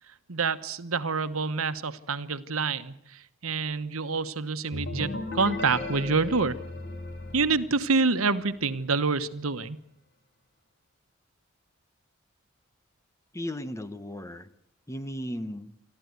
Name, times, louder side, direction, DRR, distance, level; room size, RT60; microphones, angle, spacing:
voice 1, 0.3-2.9 3.4-6.5 7.3-9.8, right 4 dB, 90° right, 11 dB, 1.2 m, -27 dB
sound 1, 4.7-8.4, left 2 dB, 55° left, 3.9 m, -36 dB
voice 2, 13.3-14.5 14.9-15.7, equal, 15° left, 12 dB, 1.0 m, -35 dB
27.0 x 13.0 x 9.5 m, 0.75 s
head